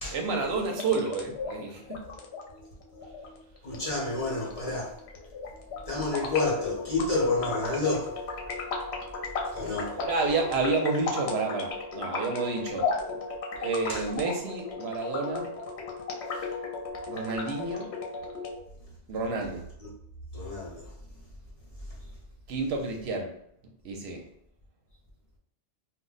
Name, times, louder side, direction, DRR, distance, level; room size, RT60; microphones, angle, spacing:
voice 1, 0.1-2.0 9.6-12.9 13.6-15.5 16.3-16.5 17.1-17.9 19.1-19.6 22.5-23.3 23.8-24.2, right 3 dB, 75° right, 2 dB, 0.8 m, -30 dB
sound 1, 0.6-18.6, left 4 dB, 80° left, 0.9 m, -36 dB
voice 2, 3.6-5.0 5.9-8.2 9.5-10.0 13.9-14.0 19.8-19.9 20.3-20.9, left 3 dB, 40° left, -6 dB, 0.8 m, -29 dB
2.2 x 2.0 x 3.7 m, 0.73 s
omnidirectional pair, 1.1 m